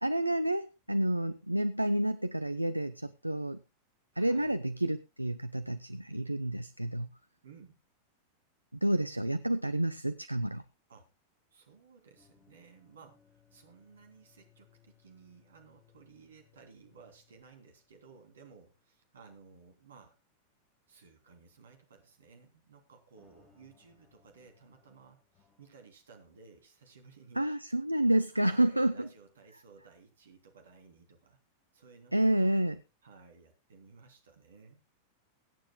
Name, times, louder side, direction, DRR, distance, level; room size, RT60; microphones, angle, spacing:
voice 1, 0.0-3.6 4.2-7.1 8.8-10.6 27.4-29.1 32.1-32.8, right 1 dB, 85° right, 12 dB, 0.6 m, -29 dB
voice 2, 4.1-4.6 7.4-7.8 10.9-11.1 11.5-20.2 20.9-27.4 27.9-28.0 28.3-31.4 31.7-32.7 33.0-34.8, right 5 dB, 65° right, 5 dB, 3.1 m, -57 dB
sound 1, 12.1-18.7 19.0-19.1 19.7-19.8 23.2-25.7, left 8 dB, 25° left, 4.6 m, -67 dB
23.0 x 9.2 x 2.2 m, 0.27 s
figure-of-eight pair, 90°, 0 cm